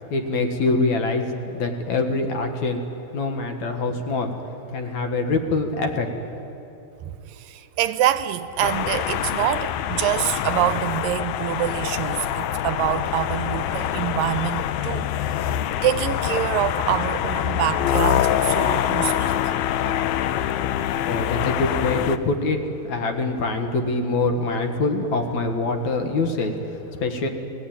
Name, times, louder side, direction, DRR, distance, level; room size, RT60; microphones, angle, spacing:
voice 1, 0.1-2.8 3.1-4.3 4.7-6.2 21.1-22.6 22.9-27.3, left 3 dB, 60° left, 4 dB, 2.6 m, -24 dB
voice 2, 7.0-15.1 15.4-15.5 15.8-19.5, right 12 dB, 80° right, 12 dB, 2.3 m, -26 dB
sound 1, 8.6-22.2, left 10 dB, 80° left, 1.7 m, -25 dB
28.5 x 19.0 x 8.8 m, 3.0 s
omnidirectional pair, 4.1 m